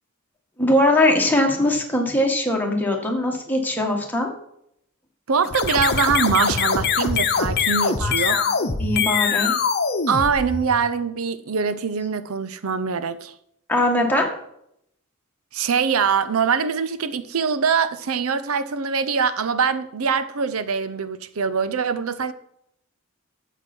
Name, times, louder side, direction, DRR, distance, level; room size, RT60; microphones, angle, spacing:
voice 1, 0.6-4.3 8.0-9.5 13.7-14.3, left 1 dB, 10° left, 1.9 m, -21 dB
voice 2, 5.3-8.4 10.1-13.3 15.5-22.3, right 6 dB, 85° right, 0.7 m, -23 dB
sound 1, 5.4-10.9, left 6 dB, 50° left, 1.0 m, -23 dB
12.5 x 7.9 x 4.5 m
head